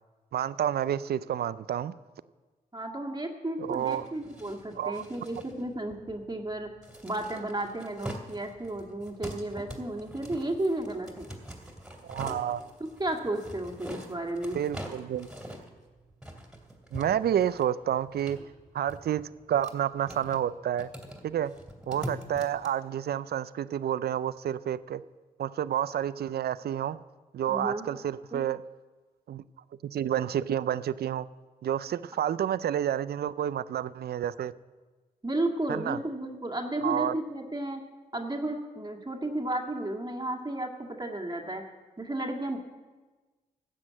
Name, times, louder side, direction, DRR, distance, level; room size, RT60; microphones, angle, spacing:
voice 1, 0.3-1.9 3.6-4.1 4.8-5.0 12.0-12.6 14.5-15.3 16.9-18.4 18.7-19.2 19.5-20.9 21.2-21.5 21.9-25.0 25.4-27.0 27.3-28.6 29.3-29.4 29.8-31.3 31.6-34.5 35.7-36.0 36.8-37.1, right 10 dB, 70° right, 17 dB, 0.4 m, -29 dB
voice 2, 2.7-6.7 7.0-11.3 12.8-14.6 27.5-27.9 28.3-28.4 35.2-37.8 38.1-41.6 42.0-42.6, right 1 dB, 25° right, 2 dB, 1.9 m, -33 dB
sound 1, 3.6-22.7, equal, 5° right, 2.6 m, -45 dB
12.5 x 7.6 x 7.4 m, 1.3 s
supercardioid pair, 45°, 17 cm